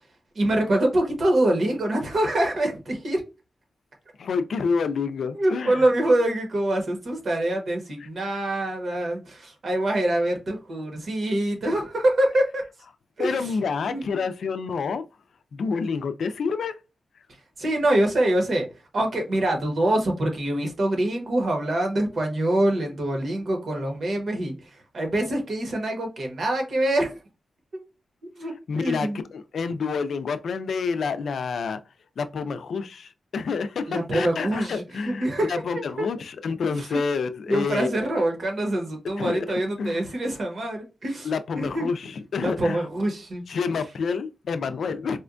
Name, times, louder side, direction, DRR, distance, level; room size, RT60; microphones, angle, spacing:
voice 1, 0.3-3.2 5.3-12.6 13.2-13.5 13.9-14.2 17.6-18.7 18.9-27.2 28.2-29.2 33.9-36.1 36.7-37.0 37.5-41.9 42.4-43.4, right 1 dB, 55° right, 1.1 m, -25 dB
voice 2, 4.2-5.8 13.2-15.0 15.5-16.7 28.7-31.8 32.2-37.9 39.2-39.5 39.8-40.0 41.2-42.9 43.5-45.2, left 5 dB, 85° left, 0.4 m, -28 dB
4.2 x 2.2 x 2.4 m
wide cardioid pair, 165°, 0 cm